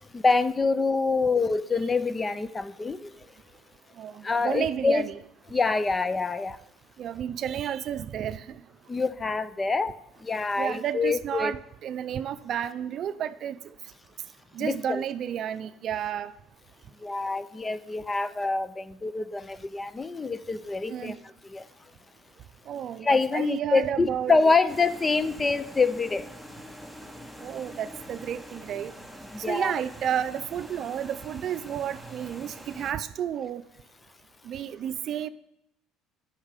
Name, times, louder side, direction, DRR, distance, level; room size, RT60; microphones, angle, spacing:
voice 1, 0.1-3.3 4.2-5.1 5.5-6.6 8.9-11.5 14.6-15.0 17.0-21.2 21.4-21.6 23.0-26.3 29.3-29.7, left 4 dB, 20° left, 15 dB, 0.4 m, -26 dB
voice 2, 4.0-5.2 7.0-8.6 10.6-13.6 14.5-16.3 20.9-21.2 22.7-24.3 27.4-28.9 29.5-33.6 34.4-35.3, right 9 dB, 50° right, 13 dB, 0.5 m, -31 dB
sound 1, 24.7-32.9, equal, 5° left, 1.0 m, -45 dB
8.7 x 5.6 x 6.5 m, 0.79 s
cardioid pair, 105°, 0 cm